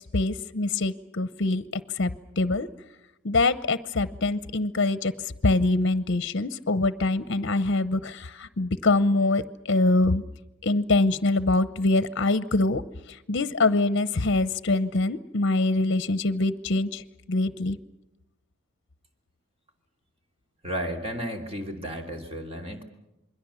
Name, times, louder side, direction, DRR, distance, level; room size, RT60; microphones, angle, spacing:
voice 1, 0.0-1.6 2.0-2.7 3.2-5.1 5.4-10.2 10.6-12.8 13.3-17.0 17.3-17.8, left 2 dB, 55° left, 14 dB, 0.8 m, -24 dB
voice 2, 20.6-22.8, equal, 30° right, 3 dB, 3.0 m, -33 dB
27.5 x 21.5 x 7.2 m, 0.91 s
head